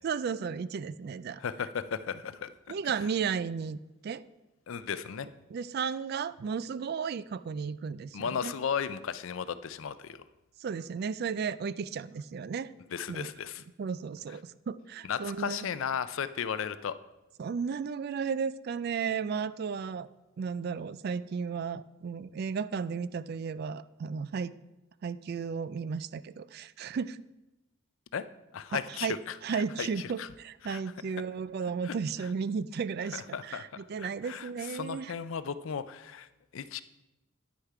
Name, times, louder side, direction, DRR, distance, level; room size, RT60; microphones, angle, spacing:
voice 1, 0.0-1.4 2.7-3.8 4.0-4.2 5.5-8.5 10.6-12.7 13.1-13.3 13.8-15.7 17.4-20.1 20.4-24.5 25.0-27.2 28.7-29.2 29.4-35.1, right 6 dB, 50° right, 17 dB, 0.3 m, -34 dB
voice 2, 1.4-2.5 4.7-5.3 8.1-10.2 12.9-13.6 15.1-16.9 28.1-28.2 28.5-30.3 30.6-30.8 31.8-32.0 33.1-33.6 34.0-36.3 36.5-36.8, left 7 dB, 70° left, 14 dB, 0.4 m, -35 dB
9.6 x 6.5 x 4.8 m, 1.0 s
head